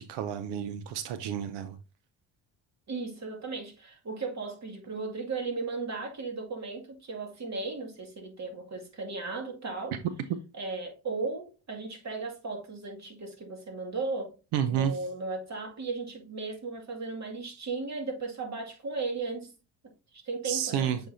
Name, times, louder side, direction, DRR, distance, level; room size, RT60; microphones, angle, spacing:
voice 1, 0.0-1.8 14.5-15.0 20.4-21.0, right 9 dB, 90° right, 0.7 m, -30 dB
voice 2, 2.9-10.0 10.5-14.3 14.7-19.5 20.1-20.9, right 3 dB, 40° right, 2.2 m, -36 dB
7.4 x 5.3 x 2.7 m
cardioid pair, 80°, 40 cm